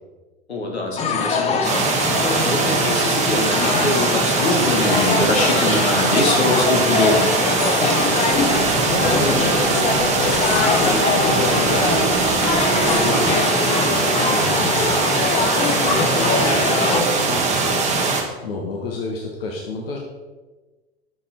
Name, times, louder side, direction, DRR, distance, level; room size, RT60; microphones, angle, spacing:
voice 1, 0.5-1.8 2.4-7.3 15.6-16.1, left 2 dB, 80° left, 0 dB, 1.7 m, -23 dB
sound 1, 1.0-17.0, left 4 dB, 20° left, 0.7 m, -23 dB
sound 2, 1.6-18.2, right 4 dB, 20° right, 1.2 m, -21 dB
voice 2, 8.2-12.3 12.7-15.1 15.8-17.8 18.4-20.0, left 3 dB, 65° left, 0 dB, 1.1 m, -29 dB
sound 3, 8.3-13.4, right 8 dB, 45° right, 0.7 m, -30 dB
7.0 x 5.3 x 4.3 m, 1.2 s
figure-of-eight pair, 85°, 32 cm